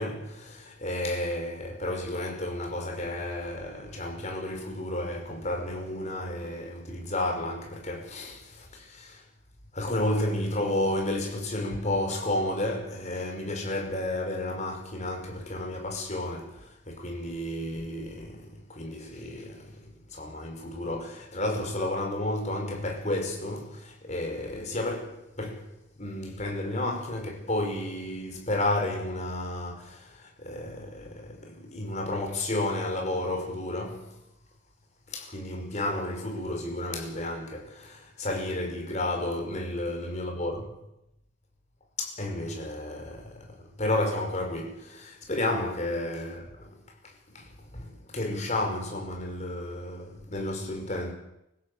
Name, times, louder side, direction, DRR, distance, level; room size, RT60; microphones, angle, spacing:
voice 1, 0.0-9.2 9.7-25.7 26.0-34.2 35.1-40.7 42.0-46.7 47.0-51.1, left 1 dB, 35° left, 5.5 m, -32 dB
26.0 x 15.5 x 8.7 m
head